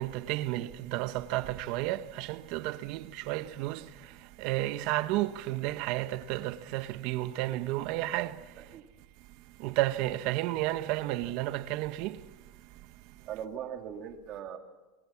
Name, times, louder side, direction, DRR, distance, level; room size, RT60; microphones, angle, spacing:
voice 1, 0.0-3.9 4.4-8.4 9.6-12.2, right 16 dB, 60° right, 1.3 m, -32 dB
voice 2, 8.6-8.9 13.3-14.6, right 9 dB, 40° right, 2.9 m, -40 dB
27.0 x 23.5 x 6.1 m
supercardioid pair, 145°, 0 cm